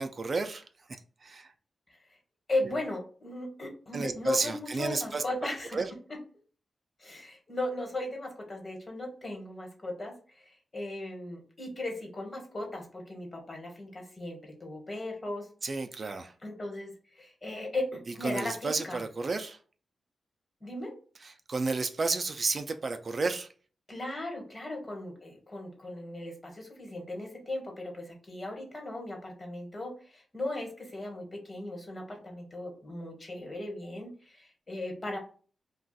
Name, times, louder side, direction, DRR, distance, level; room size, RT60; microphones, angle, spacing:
voice 1, 0.0-1.5 2.6-2.8 3.9-5.9 15.6-16.3 18.2-19.6 21.2-23.5, right 3 dB, 45° right, 0.3 m, -32 dB
voice 2, 2.5-5.8 7.0-15.5 16.4-19.0 20.6-20.9 23.9-35.2, left 1 dB, 35° left, 1.3 m, -37 dB
2.4 x 2.3 x 3.9 m
cardioid pair, 75°, 0 cm